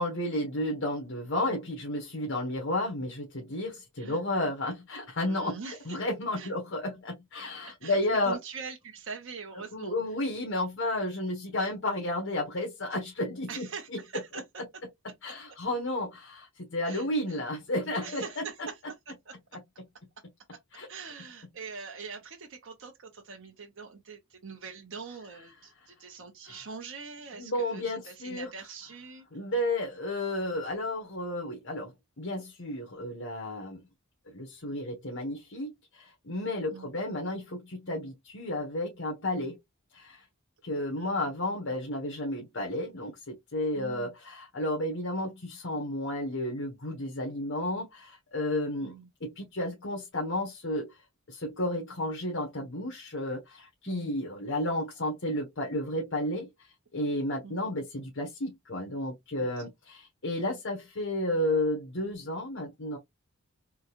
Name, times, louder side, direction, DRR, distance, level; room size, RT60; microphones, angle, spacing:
voice 1, 0.0-8.4 9.7-14.0 15.2-18.2 20.7-20.9 26.4-26.7 27.3-28.5 29.3-33.8 34.3-39.6 39.9-40.2 40.6-51.0 51.3-63.0, left 1 dB, 60° left, 1.2 m, -32 dB
voice 2, 5.2-6.0 6.4-6.5 7.8-8.0 8.3-10.0 11.5-11.7 13.5-14.4 15.2-15.6 16.8-17.1 18.0-19.6 20.9-29.3 36.7-36.9 41.0-41.2 43.8-44.1 48.8-49.1 53.9-54.1 57.4-57.7 59.4-59.6, right 5 dB, 65° right, 0.8 m, -43 dB
3.7 x 2.3 x 2.9 m
head